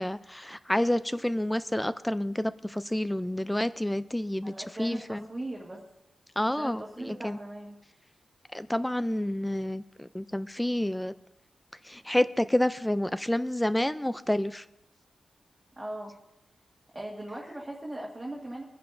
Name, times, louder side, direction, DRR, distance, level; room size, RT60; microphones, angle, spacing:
voice 1, 0.0-4.5 4.8-5.3 6.4-7.4 8.5-11.1 11.8-14.6, left 1 dB, 5° left, 14 dB, 0.3 m, -29 dB
voice 2, 4.4-5.8 6.6-7.8 15.8-16.1 16.9-18.6, right 1 dB, 20° right, -3 dB, 1.6 m, -39 dB
23.0 x 10.0 x 2.6 m, 0.87 s
wide cardioid pair, 125°, 0 cm